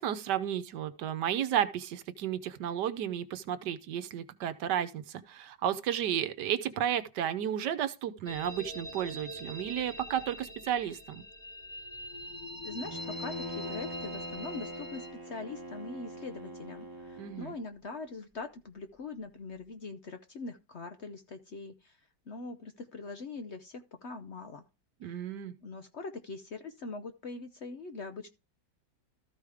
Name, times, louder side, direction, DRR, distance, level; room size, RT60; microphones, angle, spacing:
voice 1, 0.0-11.2 17.2-17.5 25.0-25.5, right 10 dB, 80° right, 1.4 m, -33 dB
sound 1, 8.3-15.1, left 1 dB, 25° left, 1.3 m, -43 dB
voice 2, 12.6-24.6 25.0-25.4 25.6-28.3, left 3 dB, 55° left, 0.8 m, -42 dB
Bowed string instrument, 12.8-17.7, right 1 dB, 15° right, 1.1 m, -43 dB
14.0 x 4.9 x 3.5 m
omnidirectional pair, 1.9 m